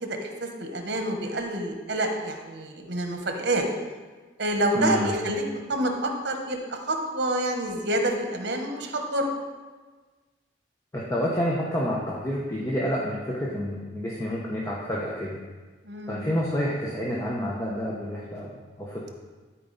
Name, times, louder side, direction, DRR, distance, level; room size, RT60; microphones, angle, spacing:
voice 1, 0.0-3.6 4.4-5.4 5.7-9.3 15.8-16.3, right 1 dB, 65° right, 4 dB, 1.1 m, -28 dB
voice 2, 4.7-5.1 10.9-15.4 16.1-19.1, equal, 15° left, -4 dB, 0.9 m, -29 dB
12.5 x 4.6 x 4.0 m, 1.4 s
head